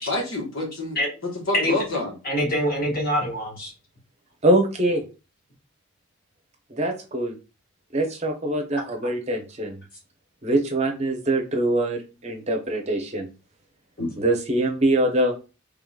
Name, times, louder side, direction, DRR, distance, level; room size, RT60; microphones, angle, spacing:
voice 1, 0.0-2.1, left 2 dB, 75° left, 1 dB, 1.3 m, -28 dB
voice 2, 2.2-3.7 14.0-14.1, equal, 45° left, -2 dB, 1.5 m, -24 dB
voice 3, 4.4-5.0 6.7-7.3 7.9-9.8 10.4-13.3 14.2-15.3, right 1 dB, 30° right, 3 dB, 0.7 m, -23 dB
3.7 x 3.4 x 2.3 m, 0.31 s
head